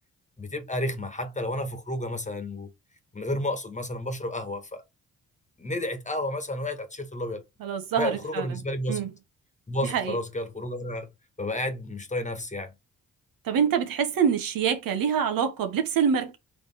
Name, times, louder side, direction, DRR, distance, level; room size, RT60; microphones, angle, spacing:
voice 1, 0.4-2.7 3.1-4.8 5.6-7.4 8.0-9.0 9.7-11.1 11.4-12.7, left 1 dB, 20° left, 1.3 m, -31 dB
voice 2, 7.6-8.4 8.9-9.1 9.8-10.2 13.4-16.4, right 7 dB, 80° right, 1.0 m, -25 dB
4.2 x 3.3 x 3.4 m
supercardioid pair, 60°, 34 cm